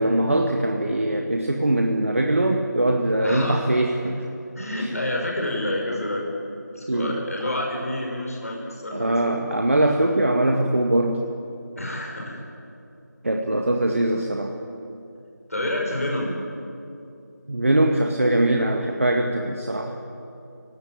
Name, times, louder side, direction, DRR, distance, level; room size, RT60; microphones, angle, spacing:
voice 1, 0.0-4.2 4.8-4.9 6.9-7.2 8.9-11.2 13.2-14.5 17.5-19.9, right 1 dB, 45° right, 2 dB, 1.8 m, -22 dB
voice 2, 3.2-3.8 4.6-6.3 6.7-9.6 11.8-12.4 15.5-16.4, left 1 dB, 55° left, -1 dB, 6.2 m, -28 dB
29.0 x 18.0 x 9.0 m, 2.6 s
figure-of-eight pair, 170°, 10 cm